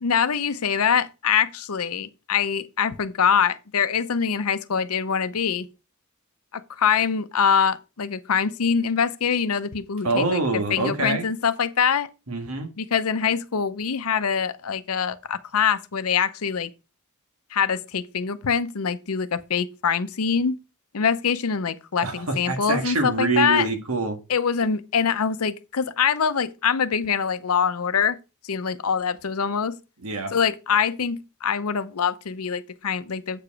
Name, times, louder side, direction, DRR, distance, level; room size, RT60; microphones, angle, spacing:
voice 1, 0.0-5.7 6.8-10.4 10.7-12.1 12.8-16.7 17.5-20.6 20.9-23.7 24.3-28.2 28.4-29.8 30.3-33.4, left 7 dB, 80° left, 0.7 m, -24 dB
voice 2, 10.0-11.3 12.3-12.7 22.0-24.2 30.0-30.3, right 3 dB, 80° right, 1.6 m, -25 dB
7.9 x 4.9 x 4.7 m
head